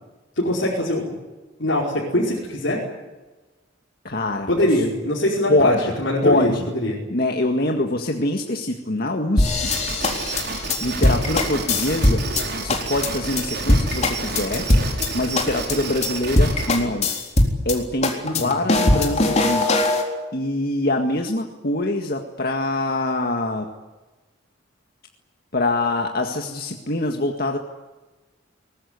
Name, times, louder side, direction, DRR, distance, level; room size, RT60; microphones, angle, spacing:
voice 1, 0.4-1.2 1.6-2.8 4.5-7.0 18.2-18.5, left 1 dB, 70° left, -5 dB, 5.2 m, -22 dB
voice 2, 4.0-4.5 5.5-5.9 6.2-6.7 7.1-9.7 10.8-12.3 12.6-14.7 15.1-17.1 17.7-23.7 25.5-27.6, left 2 dB, 50° left, 3 dB, 1.9 m, -24 dB
sound 1, 9.4-12.4 12.7-13.1 13.4-13.5 13.7-15.1 15.4-15.7 16.0-16.1 16.4-17.8 18.0-20.0, left 2 dB, 35° left, 3.9 m, -20 dB
sound 2, 9.6-16.7, right 3 dB, 60° right, 6.0 m, -30 dB
23.0 x 19.5 x 9.7 m, 1.2 s
head